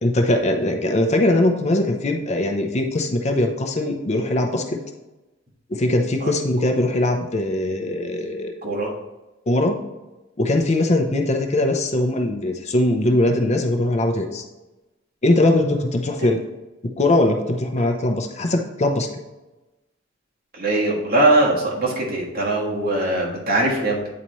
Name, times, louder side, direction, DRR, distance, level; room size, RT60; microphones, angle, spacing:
voice 1, 0.0-4.8 5.7-8.6 9.5-9.8 10.4-14.4 15.2-16.4 16.8-19.1, left 1 dB, 35° left, 4 dB, 0.6 m, -21 dB
voice 2, 20.5-24.0, right 2 dB, 50° right, -3 dB, 1.6 m, -21 dB
8.6 x 4.1 x 3.1 m, 1.0 s
head